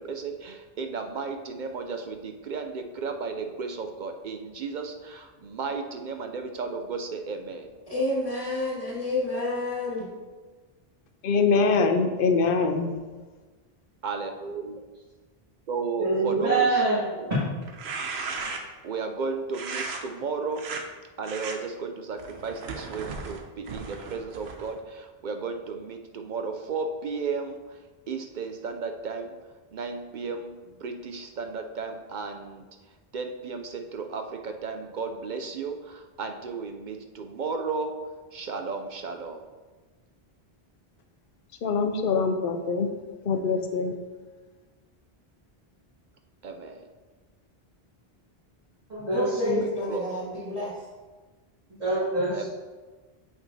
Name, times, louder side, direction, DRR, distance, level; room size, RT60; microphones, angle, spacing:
voice 1, 0.0-7.7 14.0-14.8 15.7-16.8 17.1-17.4 18.8-20.7 21.2-27.8 28.1-29.3 29.7-32.7 33.1-38.0 38.3-39.5 46.4-46.8 49.6-50.0 52.3-52.5, right 4 dB, 60° right, 5 dB, 0.6 m, -34 dB
voice 2, 7.9-10.1 49.1-50.7, left 2 dB, 25° left, -5 dB, 1.8 m, -29 dB
voice 3, 11.2-12.9 41.6-42.9 43.3-43.9, left 4 dB, 65° left, 6 dB, 0.8 m, -23 dB
voice 4, 16.0-17.0 48.9-49.6 51.8-52.5, right 3 dB, 40° right, -13 dB, 2.2 m, -25 dB
sound 1, 17.6-18.8 19.5-20.0 20.5-20.8 21.2-21.6 22.2-24.8, right 4 dB, 90° right, 1.0 m, -36 dB
7.5 x 6.0 x 2.7 m, 1.3 s
omnidirectional pair, 1.0 m